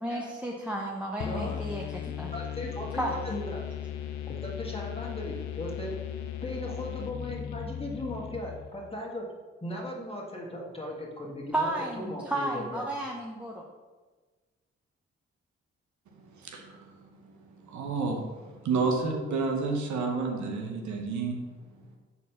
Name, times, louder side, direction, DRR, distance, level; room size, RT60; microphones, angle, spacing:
voice 1, 0.0-2.3 2.9-3.1 11.5-13.7, right 1 dB, 5° right, -1 dB, 0.7 m, -33 dB
sound 1, 1.2-8.9, left 9 dB, 75° left, 0.5 m, -37 dB
voice 2, 1.2-1.6 2.3-3.6 4.3-6.0 6.4-9.2 9.6-12.8, left 1 dB, 20° left, -2 dB, 1.8 m, -37 dB
voice 3, 16.4-16.9 17.6-21.4, right 4 dB, 80° right, 2 dB, 0.9 m, -30 dB
4.2 x 4.1 x 5.5 m, 1.3 s
supercardioid pair, 45°, 29 cm